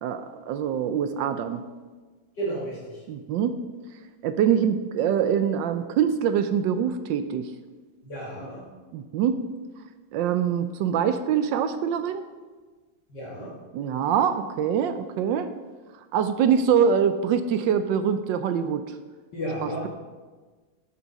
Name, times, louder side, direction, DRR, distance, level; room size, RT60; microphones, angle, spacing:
voice 1, 0.0-1.6 3.1-3.5 4.2-7.5 8.9-9.4 10.1-12.2 13.7-15.5 16.1-18.8 19.6-19.9, right 8 dB, 75° right, 10 dB, 1.2 m, -24 dB
voice 2, 2.4-3.0 8.0-8.6 13.1-13.5 19.3-19.9, right 1 dB, 60° left, -6 dB, 2.2 m, -32 dB
12.0 x 7.3 x 4.1 m, 1.4 s
omnidirectional pair, 2.2 m